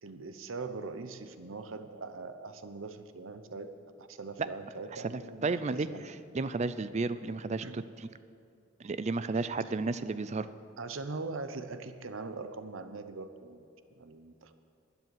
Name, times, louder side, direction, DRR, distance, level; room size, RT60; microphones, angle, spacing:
voice 1, 0.0-3.7 4.0-6.0 7.6-7.9 9.3-9.4 10.8-13.7 13.9-14.5, right 3 dB, 85° right, 10 dB, 0.8 m, -41 dB
voice 2, 4.9-7.8 8.8-10.5, right 3 dB, 35° right, 14 dB, 0.4 m, -33 dB
12.0 x 9.9 x 8.0 m, 2.5 s
head